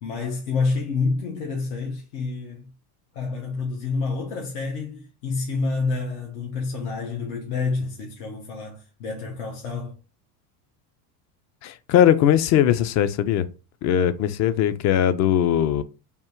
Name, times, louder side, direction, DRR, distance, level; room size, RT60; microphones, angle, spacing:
voice 1, 0.0-2.7 3.1-10.0, left 4 dB, 85° left, 1.1 m, -28 dB
voice 2, 11.6-13.5 13.8-15.8, left 10 dB, 40° left, 0.4 m, -20 dB
3.6 x 2.4 x 4.4 m
supercardioid pair, 110°, 45 cm